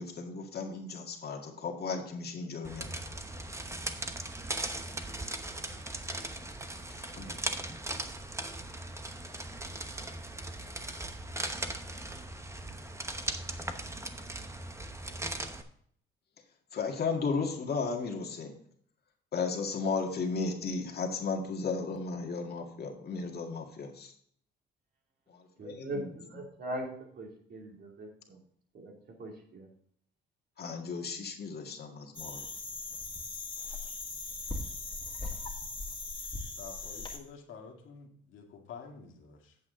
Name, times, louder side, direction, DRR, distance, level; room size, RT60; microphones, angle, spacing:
voice 1, 0.0-3.2 7.0-7.4 16.7-18.5 19.3-24.1 25.3-26.1 30.6-32.5, left 4 dB, 55° left, 2 dB, 2.0 m, -35 dB
sound 1, 2.6-15.6, right 2 dB, 15° right, 0.9 m, -38 dB
voice 2, 25.6-26.9 27.2-28.4 28.7-28.9 29.2-29.7, right 1 dB, 55° right, 1 dB, 2.9 m, -40 dB
sound 2, 32.1-37.2, left 3 dB, 25° left, 2.2 m, -39 dB
voice 3, 36.6-39.6, left 6 dB, 75° left, 1 dB, 2.1 m, -49 dB
8.6 x 7.6 x 3.8 m, 0.63 s
cardioid pair, 90°, 20 cm